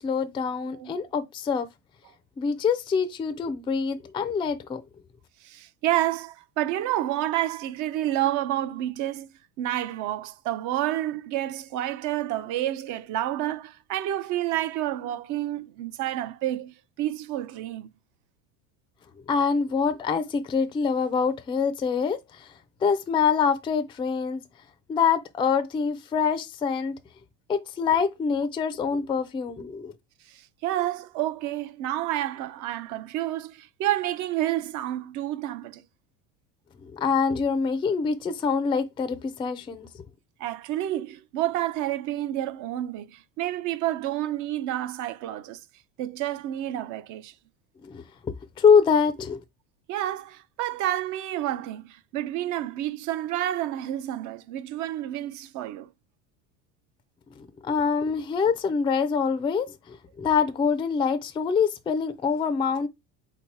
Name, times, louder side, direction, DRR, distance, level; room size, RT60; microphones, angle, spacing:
voice 1, 0.0-1.7 2.4-4.8 19.3-22.5 22.8-24.4 24.9-27.0 27.5-29.9 36.8-39.9 47.8-49.4 57.4-62.9, left 6 dB, 15° left, 0.4 m, -25 dB
voice 2, 5.4-9.3 9.6-17.9 30.3-35.8 40.4-45.6 46.0-47.3 49.9-55.9, right 13 dB, 50° right, 0.5 m, -29 dB
3.8 x 2.9 x 4.5 m
supercardioid pair, 115°, 38 cm